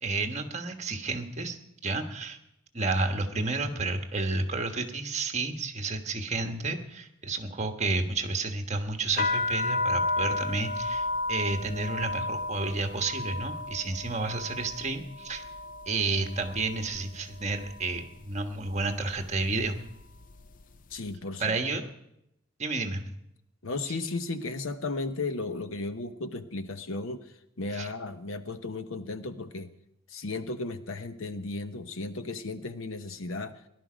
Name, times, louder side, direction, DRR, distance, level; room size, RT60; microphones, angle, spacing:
voice 1, 0.0-2.4 2.7-15.4 15.9-19.8 21.4-21.8 22.6-23.0 27.7-27.9, right 3 dB, 35° right, 5 dB, 1.4 m, -31 dB
sound 1, 9.1-17.0 17.3-18.0 18.6-18.9 19.2-20.6, left 2 dB, 40° left, 0.5 m, -33 dB
voice 2, 20.9-21.5 23.6-29.7 30.1-33.5, left 3 dB, 70° left, 10 dB, 0.9 m, -35 dB
18.0 x 11.5 x 5.1 m, 0.82 s
head